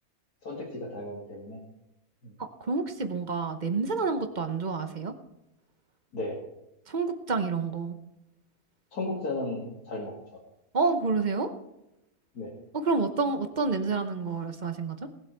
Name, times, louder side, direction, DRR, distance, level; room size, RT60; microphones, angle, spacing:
voice 1, 0.4-1.6 2.2-2.3 6.1-6.4 8.9-10.1 12.3-12.5, left 2 dB, 85° left, -3 dB, 2.8 m, -34 dB
voice 2, 2.4-5.1 6.9-8.0 10.7-11.5 12.7-15.1, right 4 dB, 35° right, 8 dB, 0.9 m, -29 dB
19.0 x 8.0 x 4.6 m, 0.90 s
omnidirectional pair, 1.6 m